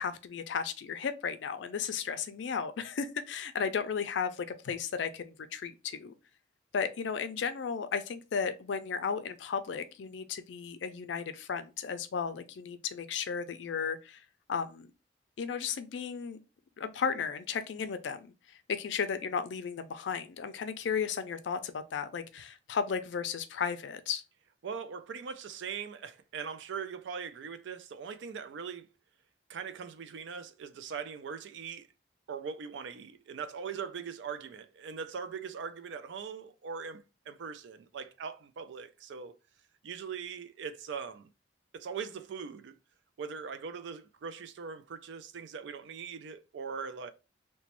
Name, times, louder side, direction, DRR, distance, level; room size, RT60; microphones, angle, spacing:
voice 1, 0.0-6.1 6.7-14.2 14.5-14.9 15.4-16.4 16.8-18.3 18.7-24.2, left 6 dB, 80° left, 0.4 m, -34 dB
voice 2, 24.6-28.9 29.5-31.9 32.3-39.3 39.8-41.3 41.7-42.8 43.2-47.1, right 6 dB, 80° right, 0.4 m, -41 dB
3.0 x 2.1 x 2.9 m
head